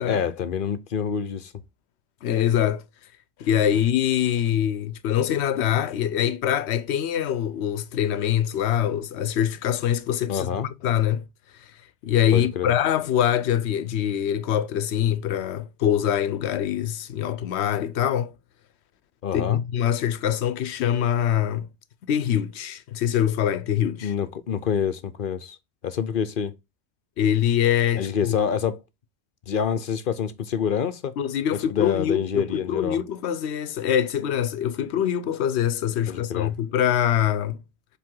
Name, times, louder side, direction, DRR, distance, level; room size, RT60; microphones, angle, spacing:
voice 1, 0.0-1.5 3.7-3.8 10.3-10.7 12.3-12.7 19.2-19.6 24.0-25.6 25.8-26.5 28.0-28.8 29.5-31.2 31.7-33.0 36.1-36.5, left 7 dB, 55° left, 0.8 m, -27 dB
voice 2, 2.2-2.8 3.4-10.5 10.8-11.2 12.0-18.3 19.3-21.7 22.1-24.1 27.2-28.4 31.2-37.6, left 10 dB, 85° left, 0.9 m, -24 dB
7.6 x 3.5 x 3.7 m
omnidirectional pair, 1.1 m